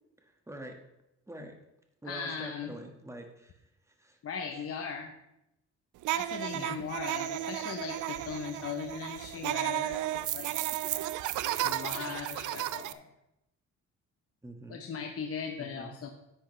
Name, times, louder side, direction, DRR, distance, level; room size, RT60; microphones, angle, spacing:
voice 1, 0.2-0.8 1.3-1.5 2.0-3.6 4.0-4.2 6.5-6.8 14.4-14.8 15.6-15.9, right 1 dB, 10° right, 3 dB, 1.7 m, -45 dB
voice 2, 2.1-2.7 4.2-5.1 6.1-10.5 11.5-13.1 14.7-16.1, left 6 dB, 50° left, 3 dB, 0.9 m, -38 dB
sound 1, 6.0-12.9, right 14 dB, 80° right, 0.5 m, -33 dB
10.5 x 8.3 x 3.3 m, 0.87 s
cardioid pair, 90°, 30 cm